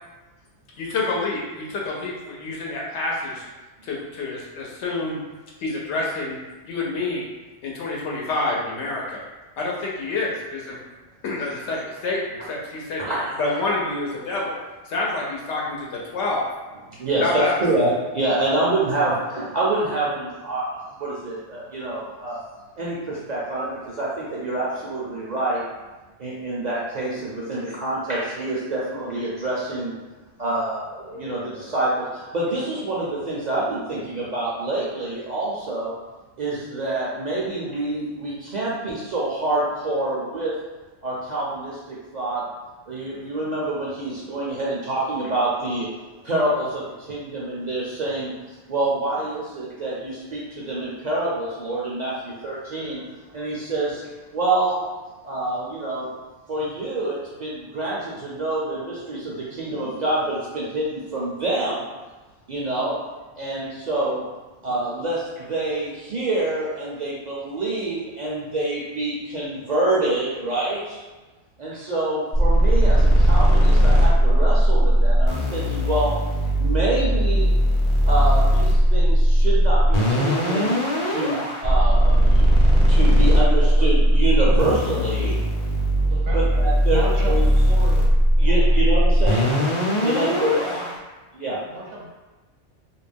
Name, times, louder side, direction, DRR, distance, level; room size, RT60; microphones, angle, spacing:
voice 1, 0.8-3.4 3.8-5.2 5.6-6.4 6.7-7.3 7.6-9.2 9.6-10.8 11.2-13.0 13.4-14.6 14.9-16.4 17.2-17.6, left 2 dB, 90° left, -3 dB, 0.9 m, -27 dB
voice 2, 13.0-13.6 16.9-22.4 22.8-25.6 26.2-29.9 30.4-35.9 36.4-40.5 41.0-42.4 42.9-45.9 46.2-54.8 55.2-56.1 56.5-61.9 62.5-63.0 63.4-64.2 64.6-71.0 71.6-76.1 76.6-77.5 78.1-85.3 86.3-87.5 88.4-89.5 90.0-90.6 91.3-91.6, right 2 dB, 55° right, -6 dB, 0.5 m, -26 dB
sound 1, 72.3-90.9, equal, 40° left, 0.5 m, -18 dB
voice 3, 83.6-83.9 84.4-85.1 86.1-86.6 86.9-87.3 87.6-88.0 88.6-88.8 89.3-89.7 90.6-90.9 91.7-92.1, right 2 dB, 75° right, -3 dB, 1.0 m, -33 dB
2.5 x 2.1 x 3.3 m, 1.2 s
omnidirectional pair, 1.1 m